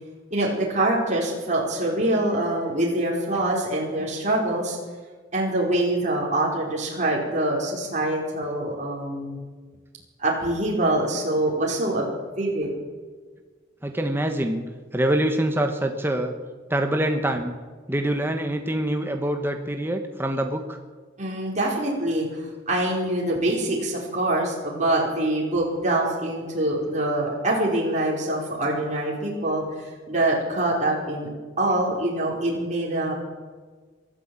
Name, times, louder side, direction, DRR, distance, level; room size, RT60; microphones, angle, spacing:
voice 1, 0.3-4.8 5.3-9.4 10.2-12.0 12.4-12.7 21.2-31.3 31.6-33.1, right 1 dB, 40° right, -3 dB, 4.9 m, -24 dB
voice 2, 13.8-14.6 14.9-16.3 16.7-17.5 17.9-20.8, right 1 dB, 10° right, 4 dB, 1.3 m, -25 dB
23.0 x 12.5 x 9.0 m, 1.4 s
head